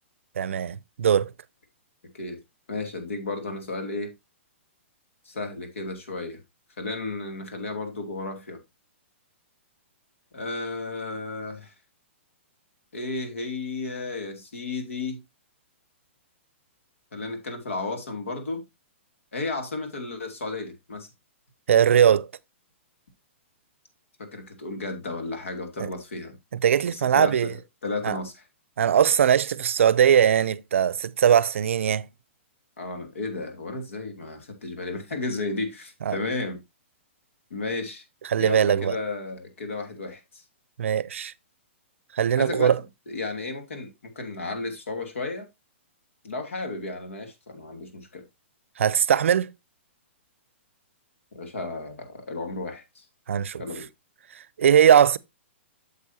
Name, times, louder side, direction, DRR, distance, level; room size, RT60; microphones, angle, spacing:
voice 1, 0.4-1.3 21.7-22.3 25.8-25.9 26.6-27.5 28.0-28.2 28.8-32.1 36.1-36.2 38.3-39.0 40.8-41.3 42.1-42.8 48.8-49.5 53.3-53.6 54.6-55.2, right 9 dB, 75° right, 0.5 m, -20 dB
voice 2, 2.7-4.1 5.2-6.4 6.8-8.6 10.3-11.7 12.9-15.2 17.1-18.6 19.3-21.1 24.2-26.4 26.9-27.5 27.8-28.4 32.8-36.6 37.5-38.0 38.4-40.4 42.4-42.7 43.1-43.9 44.2-45.5 46.2-48.2 51.3-53.0 53.6-53.9, left 3 dB, 85° left, 2.5 m, -33 dB
8.5 x 7.0 x 2.7 m
hypercardioid pair, 150°, 7 cm